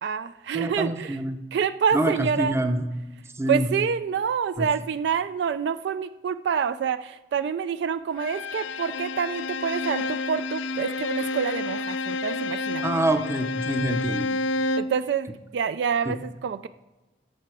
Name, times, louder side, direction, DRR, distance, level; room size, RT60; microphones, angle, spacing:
voice 1, 0.0-1.2 1.5-2.6 3.5-13.0 14.8-16.7, right 7 dB, 65° right, 12 dB, 0.3 m, -27 dB
voice 2, 0.5-1.4 1.9-2.9 3.4-3.7 4.6-4.7 12.8-14.3 16.1-16.2, right 1 dB, 15° right, 8 dB, 0.6 m, -26 dB
Bowed string instrument, 8.2-15.0, left 2 dB, 85° left, 0.4 m, -29 dB
10.5 x 6.7 x 4.8 m, 1.1 s
head